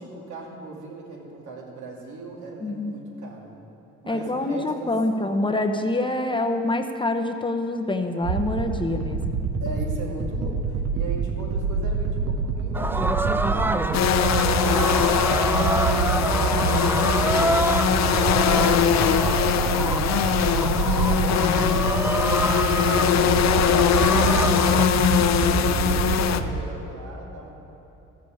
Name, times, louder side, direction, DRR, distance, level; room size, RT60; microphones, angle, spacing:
voice 1, 0.0-3.5 4.0-5.3 9.6-16.8 17.3-21.9 22.8-25.0 25.3-27.6, right 2 dB, 75° right, -2 dB, 2.4 m, -39 dB
voice 2, 2.6-3.0 4.1-9.4 16.5-16.8 24.4-25.2, left 2 dB, 15° left, 4 dB, 0.7 m, -26 dB
sound 1, 8.2-26.6, right 5 dB, 55° right, 0.8 m, -27 dB
sound 2, 12.7-24.9, right 1 dB, 10° right, 0.3 m, -27 dB
sound 3, 13.9-26.4, left 9 dB, 60° left, 0.6 m, -22 dB
14.0 x 7.1 x 6.3 m, 3.0 s
cardioid pair, 90°, 30 cm